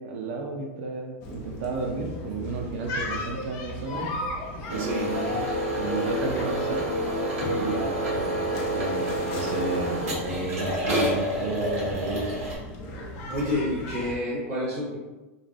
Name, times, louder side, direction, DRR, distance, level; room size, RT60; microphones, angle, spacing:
voice 1, 0.0-4.1 4.7-5.3 5.8-6.8 7.4-12.4, right 3 dB, 65° right, 1 dB, 0.4 m, -32 dB
sound 1, 1.2-14.2, left 1 dB, 40° left, 0.5 m, -36 dB
sound 2, 4.7-12.6, equal, 80° right, 0.9 m, -29 dB
voice 2, 4.8-5.1 13.3-15.0, left 1 dB, 35° right, -5 dB, 0.9 m, -29 dB
2.5 x 2.0 x 2.5 m, 1.1 s
supercardioid pair, 150°, 8 cm